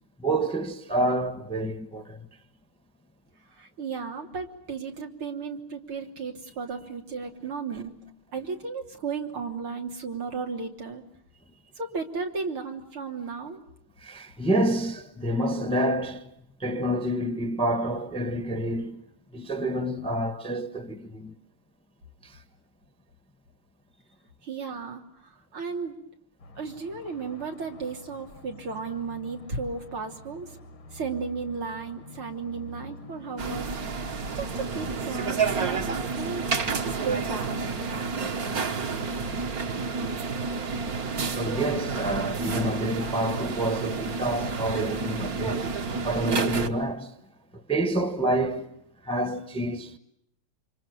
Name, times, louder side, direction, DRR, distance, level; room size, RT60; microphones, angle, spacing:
voice 1, 0.2-2.3 14.0-16.3 16.6-19.0 19.3-21.3 22.2-22.4 41.3-47.2 47.5-48.7 49.0-50.0, right 1 dB, 5° left, 1.1 m, -28 dB
voice 2, 3.5-7.9 8.3-11.0 11.8-13.6 24.4-26.0 26.6-30.6 30.9-36.5 36.9-37.9, right 5 dB, 85° right, 4.1 m, -34 dB
sound 1, 26.4-34.1, left 2 dB, 80° left, 2.6 m, -47 dB
sound 2, 33.4-46.7, right 4 dB, 45° right, 1.8 m, -30 dB
29.0 x 26.5 x 6.7 m
omnidirectional pair, 2.3 m